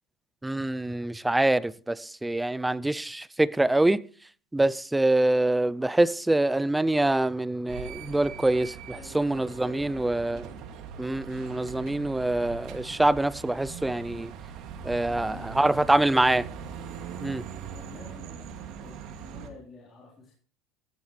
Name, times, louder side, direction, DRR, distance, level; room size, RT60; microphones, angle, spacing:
voice 1, 0.4-4.0 4.5-10.4 11.0-14.3 14.8-16.4 17.2-17.4, right 2 dB, 5° right, 0.4 m, -25 dB
crossroad Jukova st. - Dumskaya st. (Omsk), 7.7-19.5, right 7 dB, 55° right, 2.3 m, -41 dB
voice 2, 8.9-10.3 15.0-16.3 17.6-20.3, left 3 dB, 25° left, 3.8 m, -49 dB
14.5 x 13.5 x 3.2 m
cardioid pair, 140°, 0 cm